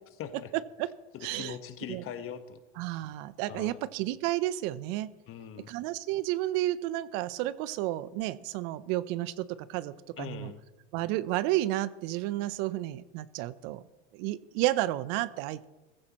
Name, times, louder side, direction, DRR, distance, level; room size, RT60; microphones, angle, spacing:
voice 1, 0.2-0.5 1.1-2.6 2.9-3.0 3.5-3.8 5.3-5.7 10.2-10.6, left 9 dB, 40° left, 9 dB, 1.4 m, -41 dB
voice 2, 1.2-1.6 1.9-2.0 2.8-5.1 5.7-10.5 10.9-13.8 14.1-15.6, right 15 dB, 55° right, 16 dB, 0.7 m, -31 dB
16.5 x 15.0 x 3.0 m, 1.1 s
hypercardioid pair, 105°, 34 cm